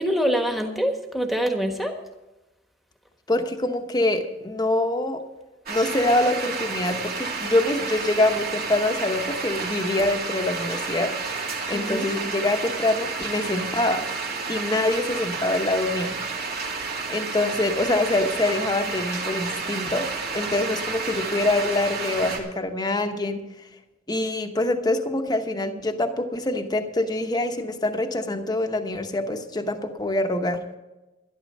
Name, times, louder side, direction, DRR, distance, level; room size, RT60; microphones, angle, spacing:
voice 1, 0.0-1.9 11.7-12.1, equal, ahead, 4 dB, 1.4 m, -25 dB
voice 2, 3.3-5.2 5.7-11.4 11.7-14.1 14.5-16.1 17.1-23.4 24.1-30.6, left 2 dB, 20° left, 6 dB, 1.0 m, -25 dB
sound 1, 5.7-22.4, right 4 dB, 55° right, 2.4 m, -31 dB
12.5 x 12.0 x 5.3 m, 1.0 s
head